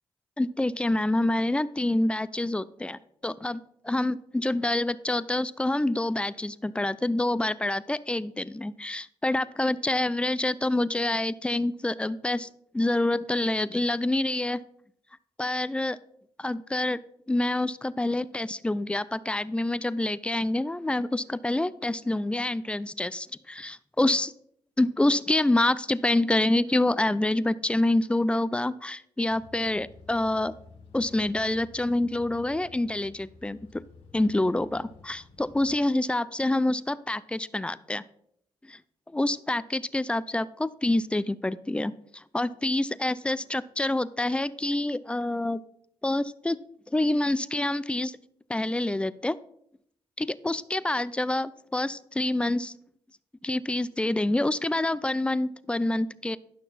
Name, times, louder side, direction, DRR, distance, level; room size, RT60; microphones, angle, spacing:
voice 1, 0.4-12.5 12.7-14.6 15.4-16.0 16.4-17.0 17.3-24.3 24.8-30.5 30.9-33.8 34.1-38.0 38.7-38.8 39.1-45.6 46.0-46.6 46.9-48.2 48.5-49.4 50.2-52.7 53.4-56.4, left 1 dB, 10° left, 17 dB, 0.4 m, -27 dB
sound 1, 29.3-35.7, left 4 dB, 85° left, 2.0 m, -52 dB
11.5 x 6.0 x 4.2 m, 0.70 s
cardioid pair, 75°, 10 cm